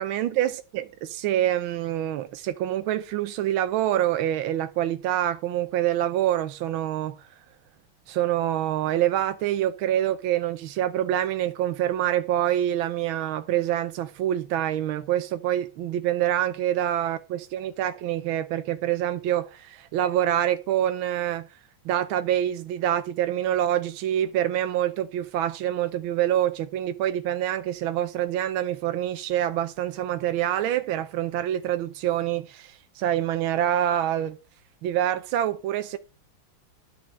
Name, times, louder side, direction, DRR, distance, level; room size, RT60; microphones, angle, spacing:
voice 1, 0.0-7.2 8.1-21.5 21.8-34.4 34.8-36.0, right 12 dB, 80° right, 1.5 m, -26 dB
11.0 x 4.7 x 7.3 m
omnidirectional pair, 2.2 m